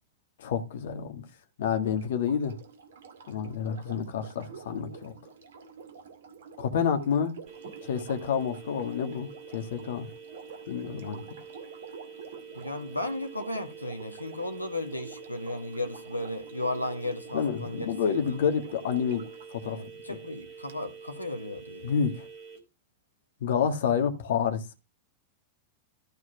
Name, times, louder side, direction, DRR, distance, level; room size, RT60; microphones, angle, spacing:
voice 1, 0.4-1.2 1.6-2.5 3.3-5.2 6.6-7.3 7.8-10.1 10.7-11.2 17.3-19.8 20.1-20.2 21.8-22.2 23.4-24.6, left 7 dB, 60° left, 1.7 m, -29 dB
Sink (filling or washing), 1.7-19.5 20.7-20.8, right 5 dB, 65° right, 2.1 m, -48 dB
sound 1, 7.5-22.6, right 6 dB, 45° right, 4.2 m, -47 dB
voice 2, 12.5-17.9 19.6-21.9, left 2 dB, 85° left, 1.3 m, -35 dB
13.5 x 4.8 x 5.9 m
figure-of-eight pair, 90°, 0 cm